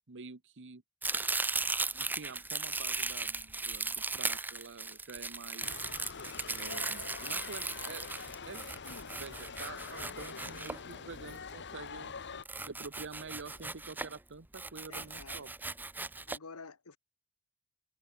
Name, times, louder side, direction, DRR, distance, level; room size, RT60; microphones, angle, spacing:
voice 1, 0.1-0.8 1.9-5.8 6.4-8.7 9.2-12.1 12.7-15.5, right 4 dB, 55° right, 1.2 m, -48 dB
Domestic sounds home sounds, 1.0-11.3 12.4-14.2 14.5-16.4, right 3 dB, 10° right, 0.6 m, -37 dB
sound 1, 5.6-12.4, left 5 dB, 55° left, 1.7 m, -45 dB
voice 2, 14.9-15.5 16.3-17.0, left 4 dB, 75° left, 1.5 m, -51 dB
head